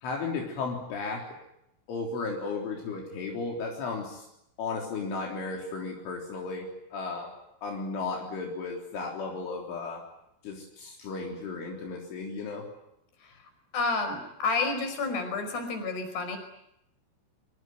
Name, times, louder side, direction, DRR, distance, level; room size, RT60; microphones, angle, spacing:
voice 1, 0.0-1.2 1.9-4.2 4.6-7.3 7.6-10.0 10.4-12.6, left 4 dB, 75° left, 0 dB, 6.2 m, -34 dB
voice 2, 13.7-16.4, left 3 dB, 55° left, 8 dB, 7.1 m, -30 dB
25.0 x 25.0 x 9.5 m, 0.81 s
omnidirectional pair, 5.6 m